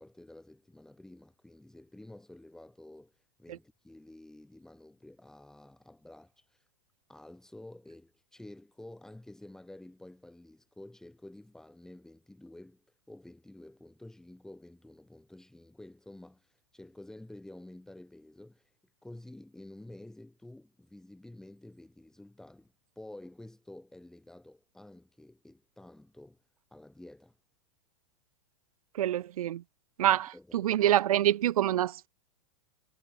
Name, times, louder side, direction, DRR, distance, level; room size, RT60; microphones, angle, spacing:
voice 1, 0.0-3.1 3.4-6.6 7.1-18.7 19.0-26.4 26.7-27.4 30.0-30.7, left 1 dB, 5° left, 4.1 m, -51 dB
voice 2, 28.9-29.6 30.0-32.1, right 12 dB, 85° right, 1.1 m, -26 dB
supercardioid pair, 160°, 18 cm